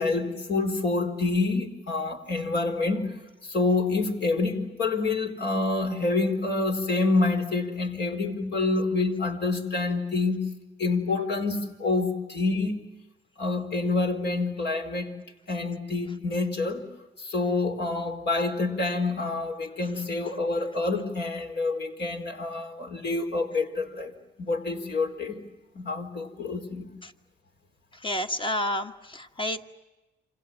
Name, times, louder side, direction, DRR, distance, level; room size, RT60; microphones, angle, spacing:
voice 1, 0.0-3.1 3.4-10.5 10.8-12.9 13.4-15.1 15.5-16.8 17.2-24.1 24.4-25.4 25.7-26.9, left 3 dB, 60° left, 5 dB, 4.4 m, -27 dB
voice 2, 28.0-29.6, left 1 dB, 25° left, 6 dB, 1.6 m, -30 dB
28.5 x 26.5 x 7.5 m, 1.1 s
cardioid pair, 90°, 20 cm